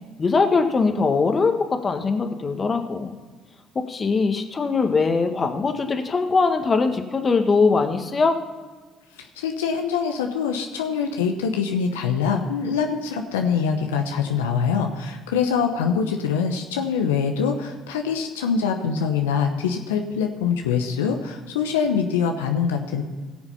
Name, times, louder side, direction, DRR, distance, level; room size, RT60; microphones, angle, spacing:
voice 1, 0.2-3.1 3.9-8.4, left 4 dB, 35° left, 6 dB, 1.6 m, -21 dB
voice 2, 9.2-23.0, left 6 dB, 85° left, 4 dB, 0.9 m, -24 dB
17.5 x 7.1 x 5.5 m, 1.4 s
hypercardioid pair, 60°, 0 cm